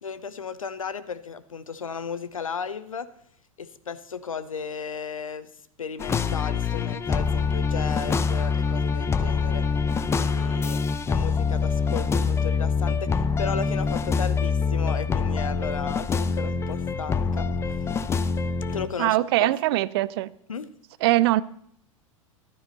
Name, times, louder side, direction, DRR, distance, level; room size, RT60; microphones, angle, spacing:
voice 1, 0.0-3.1 3.6-5.5 5.8-9.7 10.1-17.9 18.7-19.8 20.5-20.7, left 6 dB, 80° left, 0.8 m, -35 dB
sound 1, 6.0-18.9, left 5 dB, 15° left, 0.6 m, -25 dB
voice 2, 19.0-20.3 21.0-21.4, right 17 dB, 50° right, 0.4 m, -22 dB
14.0 x 11.5 x 4.1 m
figure-of-eight pair, 90°, 17 cm